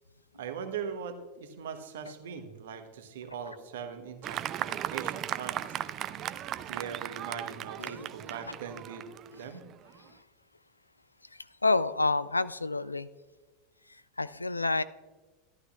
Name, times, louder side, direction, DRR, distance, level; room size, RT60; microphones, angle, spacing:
voice 1, 0.4-5.8 6.7-9.1 9.4-9.6, right 7 dB, 65° right, 7 dB, 1.0 m, -40 dB
Fireworks, 4.2-10.0, right 11 dB, 35° right, 0.4 m, -37 dB
voice 2, 7.8-8.1 8.5-8.6 11.6-13.1 14.2-14.8, left 3 dB, 85° left, 16 dB, 0.3 m, -28 dB
14.0 x 11.0 x 2.4 m, 1.3 s
figure-of-eight pair, 85°, 0 cm